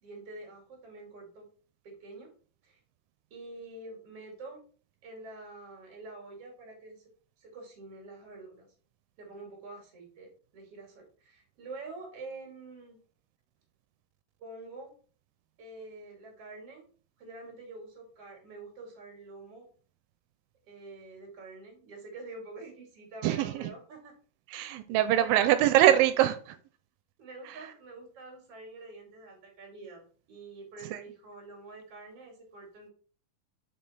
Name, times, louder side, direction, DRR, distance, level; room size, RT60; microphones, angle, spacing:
voice 1, 0.0-1.5 1.8-2.3 2.6-2.8 3.3-4.6 5.0-7.0 7.4-8.7 9.2-13.0 14.4-14.9 15.6-16.8 17.2-19.7 20.7-24.1 25.1-25.4 27.2-32.9, right 3 dB, 50° right, 0 dB, 2.9 m, -46 dB
voice 2, 23.2-23.7 24.5-26.6 27.5-27.7 30.9-31.0, right 12 dB, 90° right, 10 dB, 2.3 m, -24 dB
5.4 x 4.5 x 4.2 m, 0.41 s
omnidirectional pair, 3.9 m